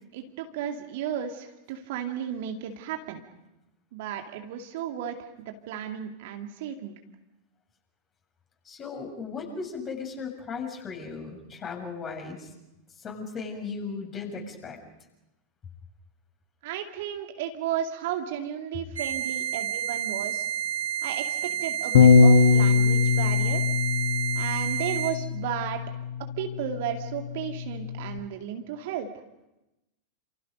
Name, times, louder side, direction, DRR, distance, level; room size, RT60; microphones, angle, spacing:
voice 1, 0.1-3.2 3.9-6.9 16.6-20.4 21.0-23.6 24.3-25.8 26.4-29.1, right 9 dB, 50° right, 4 dB, 2.6 m, -34 dB
voice 2, 8.7-12.5 13.0-14.8, left 5 dB, 25° left, 2 dB, 7.1 m, -36 dB
sound 1, 19.0-25.1, right 10 dB, 70° right, 6.6 m, -30 dB
Bass guitar, 21.9-28.2, left 5 dB, 55° left, 1.5 m, -22 dB
29.5 x 28.0 x 5.3 m, 0.94 s
figure-of-eight pair, 90°, 0 cm